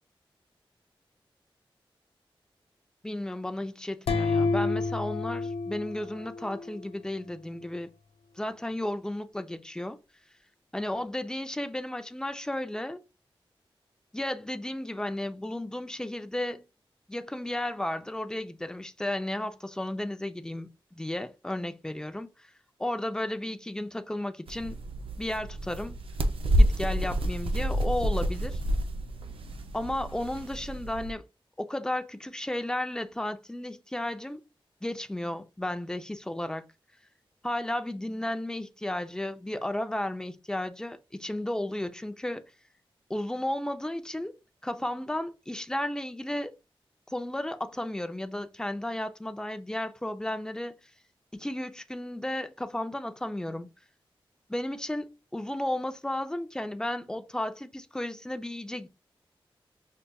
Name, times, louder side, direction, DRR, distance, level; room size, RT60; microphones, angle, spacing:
voice 1, 3.0-7.9 8.4-10.0 10.7-13.0 14.1-16.6 17.1-22.3 22.8-24.8 25.2-26.0 26.6-28.6 29.7-31.2 31.6-34.4 34.8-36.6 37.4-42.4 43.1-44.3 44.6-46.5 47.1-50.8 51.3-53.7 54.5-58.9, left 1 dB, 5° left, 0.5 m, -33 dB
sound 1, 4.1-6.8, left 4 dB, 85° left, 0.4 m, -29 dB
sound 2, 24.5-31.1, equal, 75° right, 0.5 m, -28 dB
5.5 x 2.4 x 2.3 m
cardioid pair, 60°, 9 cm